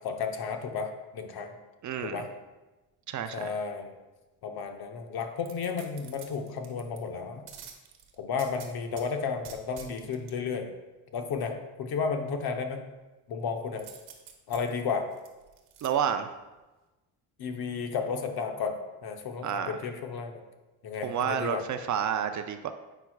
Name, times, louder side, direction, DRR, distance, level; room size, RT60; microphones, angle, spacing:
voice 1, 0.0-1.5 2.0-2.3 3.3-3.9 4.4-7.4 8.2-10.7 11.1-11.5 11.8-12.8 13.3-13.8 14.5-15.1 17.4-18.7 19.0-20.4 20.8-21.6, left 5 dB, 55° left, 6 dB, 0.9 m, -33 dB
voice 2, 1.8-2.3 3.1-3.5 15.8-16.3 19.4-19.8 21.0-22.7, right 8 dB, 40° right, 8 dB, 0.5 m, -30 dB
sound 1, 5.4-7.0 7.5-9.1 9.4-10.3 13.8-15.9 16.3-16.4, right 8 dB, 60° right, 1.1 m, -48 dB
8.0 x 5.6 x 2.3 m, 1.1 s
supercardioid pair, 80°, 45 cm